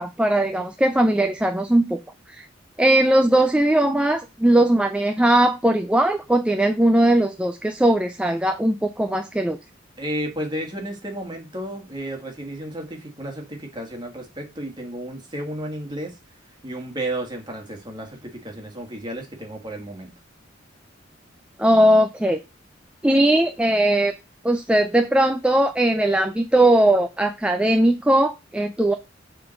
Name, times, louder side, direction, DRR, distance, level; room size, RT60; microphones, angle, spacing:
voice 1, 0.0-2.0 2.3-2.5 2.8-9.6 21.6-22.4 23.0-24.1 24.4-28.9, right 1 dB, 5° right, 0.4 m, -19 dB
voice 2, 10.0-16.1 16.6-20.1, right 1 dB, 25° right, 1.8 m, -32 dB
6.9 x 3.8 x 6.4 m
head